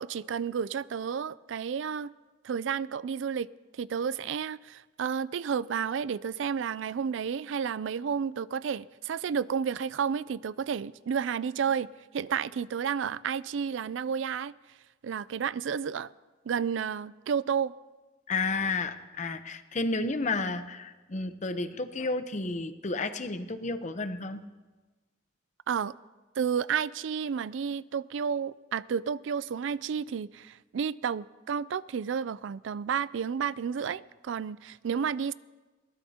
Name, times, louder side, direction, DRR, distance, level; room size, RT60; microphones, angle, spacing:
voice 1, 0.0-2.1 2.4-3.5 3.7-11.9 12.1-14.5 15.0-16.1 16.5-17.7 25.7-25.9 26.4-35.3, right 7 dB, 75° right, 0.4 m, -31 dB
voice 2, 18.3-24.4, left 3 dB, 40° left, 0.8 m, -31 dB
22.0 x 18.0 x 2.9 m
head